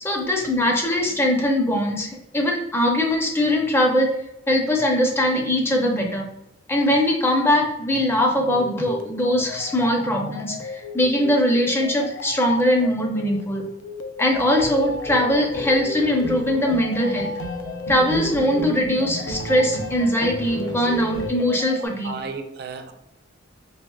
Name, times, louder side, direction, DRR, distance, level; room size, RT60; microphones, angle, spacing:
voice 1, 0.0-4.1 4.5-6.3 6.7-13.6 14.2-17.3 17.9-22.2, left 1 dB, 10° left, 1 dB, 0.5 m, -21 dB
sound 1, 8.4-21.9, left 3 dB, 85° left, 0.4 m, -35 dB
sound 2, 14.3-21.3, right 1 dB, 70° left, 0.9 m, -32 dB
voice 2, 22.0-22.9, right 4 dB, 55° right, 6 dB, 0.4 m, -34 dB
4.2 x 2.8 x 2.3 m, 0.86 s
head